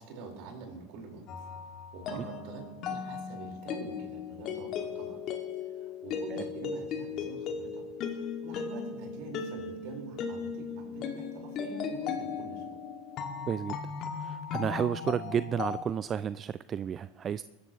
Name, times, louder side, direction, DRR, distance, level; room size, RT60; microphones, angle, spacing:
voice 1, 0.0-1.5 1.9-5.2 5.8-7.8 8.1-12.8, right 4 dB, 60° right, 2 dB, 4.3 m, -45 dB
sound 1, 1.3-15.8, left 6 dB, 50° left, 2.0 m, -37 dB
voice 2, 14.2-17.4, right 8 dB, 35° right, 16 dB, 0.3 m, -32 dB
22.0 x 13.5 x 3.0 m, 1.2 s
hypercardioid pair, 85°, 0 cm